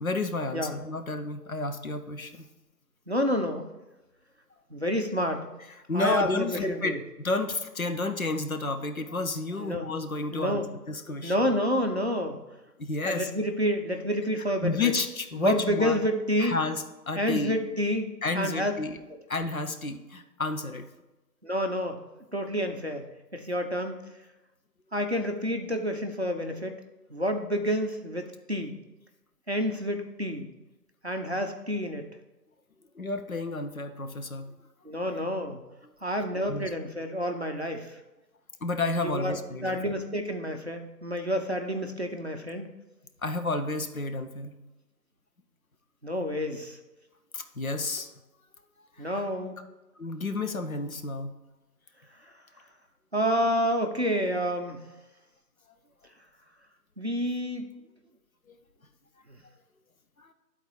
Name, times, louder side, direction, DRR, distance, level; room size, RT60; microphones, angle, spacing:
voice 1, 0.0-2.5 5.9-11.4 12.8-13.3 14.6-16.0 16.4-17.6 18.2-19.0 19.3-20.9 33.0-34.5 36.5-36.7 38.6-39.9 43.2-44.6 47.3-48.1 49.0-49.2 50.0-51.3 58.5-58.6 60.2-60.3, left 3 dB, 55° left, 7 dB, 0.8 m, -31 dB
voice 2, 3.1-3.7 4.7-5.5 5.9-7.0 9.6-9.9 10.3-10.7 11.2-12.4 13.0-14.9 15.3-16.6 17.2-18.7 21.4-22.0 22.3-23.0 23.3-23.9 24.9-26.7 27.1-28.8 29.5-30.5 31.0-32.1 34.8-35.6 36.0-38.0 39.0-42.6 46.0-46.8 49.0-49.5 50.9-51.0 53.1-54.8 57.0-57.7 59.3-59.4, equal, 40° right, 4 dB, 0.6 m, -29 dB
11.5 x 4.1 x 4.7 m, 1.0 s
figure-of-eight pair, 170°, 49 cm